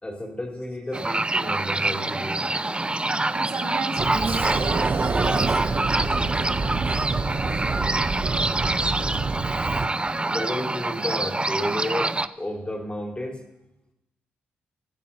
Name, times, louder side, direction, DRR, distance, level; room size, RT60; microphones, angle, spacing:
voice 1, 0.0-2.4 10.2-13.4, left 1 dB, 20° left, 0 dB, 4.4 m, -32 dB
sound 1, 0.9-12.3, right 2 dB, 20° right, 0.7 m, -26 dB
voice 2, 3.3-9.2, right 3 dB, 60° right, -2 dB, 3.3 m, -36 dB
Sliding door, 4.0-9.9, right 4 dB, 45° right, 0.9 m, -27 dB
26.0 x 13.5 x 2.9 m, 0.94 s
hypercardioid pair, 45°, 5 cm